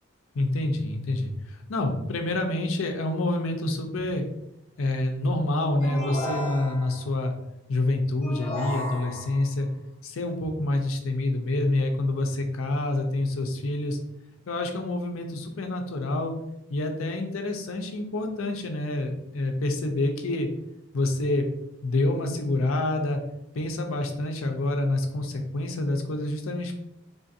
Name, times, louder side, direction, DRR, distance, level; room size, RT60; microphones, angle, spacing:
voice 1, 0.3-4.2 4.8-7.3 7.7-9.7 10.0-14.0 14.5-16.3 16.7-20.5 20.9-21.5 21.8-23.2 23.5-26.8, left 2 dB, 75° left, 4 dB, 0.5 m, -27 dB
sound 1, 5.8-7.1 8.2-9.5, left 1 dB, 30° left, 0.8 m, -34 dB
3.7 x 2.5 x 2.6 m, 0.83 s
head